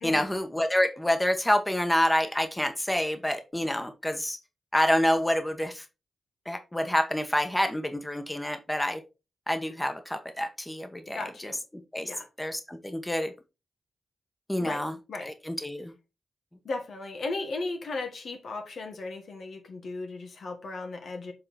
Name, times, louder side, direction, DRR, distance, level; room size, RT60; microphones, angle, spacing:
voice 1, 0.0-4.4 4.7-5.8 6.5-9.0 9.5-11.5 11.9-12.1 12.4-13.3 14.5-14.9 15.2-15.9, left 1 dB, 10° left, 1.2 m, -27 dB
voice 2, 11.1-11.6 12.0-12.3 14.6-15.3 16.6-21.3, left 3 dB, 75° left, 1.8 m, -36 dB
7.6 x 3.8 x 4.3 m
cardioid pair, 65°, 0 cm